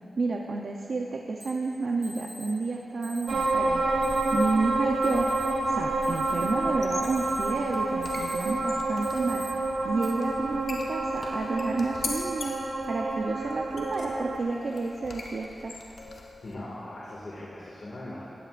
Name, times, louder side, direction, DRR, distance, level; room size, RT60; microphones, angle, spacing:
voice 1, 0.2-3.9 4.3-5.3 5.7-9.5 9.8-12.6 12.8-15.7, right 3 dB, 70° right, 0 dB, 0.7 m, -30 dB
Alarm, 1.4-1.5 2.0-2.5 3.0-3.5 4.0-4.5 5.0-5.5 5.9-6.6 7.0-7.5 7.9-8.6 9.0-9.5 10.0-10.1 10.9-11.3, equal, 25° right, 2.6 m, -45 dB
sound 1, 3.3-14.4, right 2 dB, 85° right, 1.0 m, -28 dB
sound 2, 6.7-16.5, left 3 dB, 90° left, 1.0 m, -42 dB
voice 2, 16.4-18.2, left 1 dB, 65° left, -7 dB, 2.1 m, -40 dB
16.5 x 16.0 x 2.5 m, 3.0 s
wide cardioid pair, 130°, 0 cm